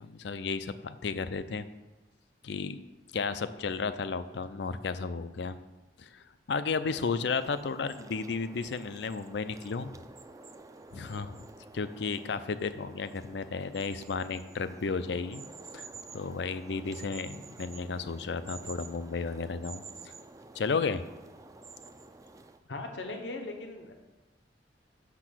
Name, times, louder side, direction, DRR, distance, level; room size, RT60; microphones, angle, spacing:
voice 1, 0.0-1.7 2.4-2.8 3.1-5.6 6.0-9.9 10.9-11.5 11.7-15.4 15.7-15.8 16.1-19.8 20.5-21.0, left 4 dB, 70° left, 13 dB, 0.5 m, -33 dB
sound 1, 6.8-22.6, right 3 dB, 20° right, 0.4 m, -49 dB
voice 2, 22.7-23.9, left 2 dB, 85° left, 4 dB, 1.0 m, -38 dB
6.6 x 6.0 x 6.1 m, 1.1 s
head